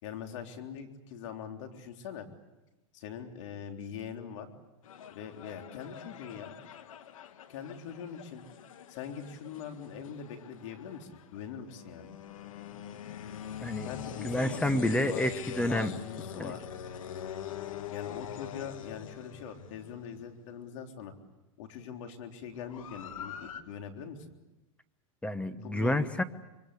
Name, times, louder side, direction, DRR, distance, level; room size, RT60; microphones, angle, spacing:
voice 1, 0.0-2.3 2.9-4.5 5.1-6.5 7.5-8.4 8.9-12.1 13.8-15.3 15.7-16.7 17.9-21.1 21.6-24.2 25.6-26.2, left 7 dB, 65° left, 4 dB, 3.7 m, -42 dB
sound 1, 4.8-20.5 22.5-23.6, left 9 dB, 85° left, 1.7 m, -44 dB
voice 2, 14.2-15.9 16.4-16.5 25.2-26.2, left 1 dB, 5° left, 11 dB, 1.0 m, -29 dB
25.0 x 24.0 x 8.4 m, 1.0 s
supercardioid pair, 130°, 17 cm